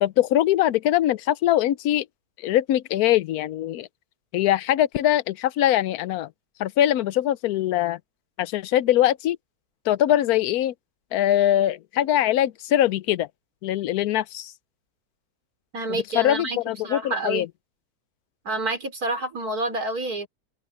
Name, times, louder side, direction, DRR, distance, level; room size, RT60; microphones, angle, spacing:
voice 1, 0.0-2.1 2.4-3.9 4.3-6.3 6.6-8.0 8.4-9.4 9.9-10.7 11.1-13.3 13.6-14.5 15.9-17.5, left 12 dB, 75° left, 1.1 m, -22 dB
voice 2, 15.7-17.5 18.4-20.3, right 2 dB, 70° right, 4.5 m, -28 dB
omnidirectional pair, 1.7 m